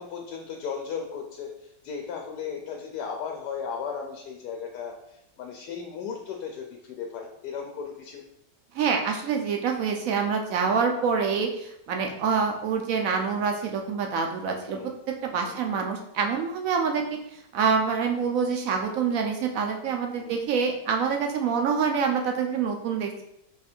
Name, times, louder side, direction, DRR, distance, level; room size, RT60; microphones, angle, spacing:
voice 1, 0.0-1.5 1.8-4.9 5.4-8.2 14.7-14.9 15.4-15.6 20.2-20.4, left 6 dB, 70° left, 1 dB, 1.1 m, -35 dB
voice 2, 8.7-17.0 17.3-23.2, right 6 dB, 70° right, 3 dB, 0.8 m, -26 dB
4.7 x 2.6 x 4.2 m, 0.79 s
omnidirectional pair, 1.9 m